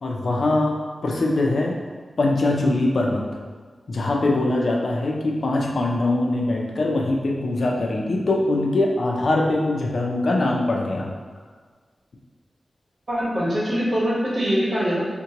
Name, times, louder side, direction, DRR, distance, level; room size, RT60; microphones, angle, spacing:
voice 1, 0.0-0.8 1.0-1.8 2.2-3.2 3.9-11.1, left 2 dB, 65° left, 0 dB, 0.5 m, -22 dB
voice 2, 13.1-15.0, equal, 50° right, -7 dB, 1.2 m, -23 dB
3.7 x 2.2 x 2.9 m, 1.5 s
wide cardioid pair, 105°, 0 cm